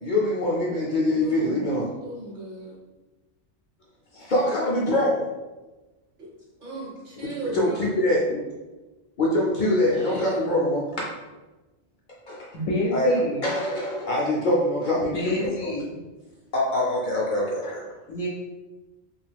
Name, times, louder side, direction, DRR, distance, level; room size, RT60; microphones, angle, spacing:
voice 1, 0.0-1.9 4.1-5.2 7.5-8.4 9.2-10.9 12.3-12.5 12.9-15.7 16.5-18.0, left 1 dB, 50° left, -4 dB, 0.6 m, -24 dB
voice 2, 1.1-1.7 2.0-2.8 6.2-6.3 6.6-8.0 9.9-10.4, right 2 dB, 55° right, -4 dB, 0.9 m, -36 dB
voice 3, 12.5-13.5 15.1-16.0 18.1-18.3, left 1 dB, 85° left, -4 dB, 0.9 m, -28 dB
2.7 x 2.4 x 3.3 m, 1.1 s
omnidirectional pair, 1.2 m